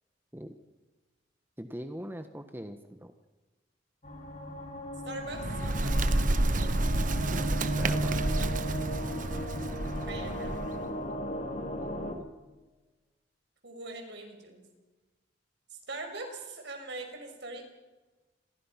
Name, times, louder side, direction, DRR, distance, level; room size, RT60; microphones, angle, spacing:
voice 1, 1.6-3.1 7.5-8.4 11.8-12.3, equal, 10° right, 7 dB, 1.3 m, -42 dB
sound 1, 4.0-12.1, equal, 40° left, 3.9 m, -38 dB
voice 2, 5.0-6.4 10.1-10.5 13.6-14.6 15.7-17.6, right 2 dB, 70° right, 4 dB, 6.0 m, -42 dB
Bird, 5.2-10.9, right 2 dB, 45° right, 1.1 m, -29 dB
28.0 x 23.0 x 5.9 m, 1.2 s
head